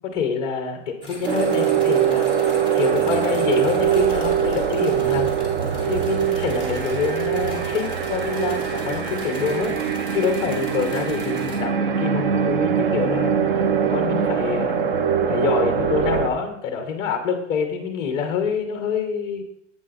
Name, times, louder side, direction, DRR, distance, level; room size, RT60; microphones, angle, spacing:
voice 1, 0.0-2.3 2.7-5.3 5.8-9.8 10.1-14.8 15.3-19.4, left 6 dB, 10° left, 5 dB, 0.6 m, -26 dB
sound 1, 1.0-11.6, left 1 dB, 10° right, 1.2 m, -38 dB
sound 2, 1.3-16.3, right 8 dB, 45° right, 0.6 m, -22 dB
7.9 x 5.4 x 3.8 m, 0.75 s
hypercardioid pair, 165°, 38 cm